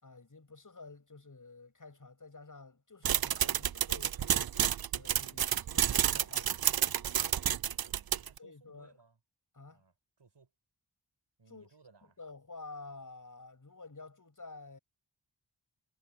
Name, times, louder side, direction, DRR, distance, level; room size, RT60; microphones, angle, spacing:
voice 1, 0.0-7.3 8.4-9.0 9.5-9.8 11.5-11.7 12.0-14.8, left 3 dB, 45° left, 7.4 m, -51 dB
sound 1, 3.1-8.4, right 10 dB, 55° right, 0.5 m, -30 dB
voice 2, 7.7-9.2 9.7-10.5 11.4-12.2, right 4 dB, 70° right, 7.2 m, -64 dB
wide cardioid pair, 60°, 44 cm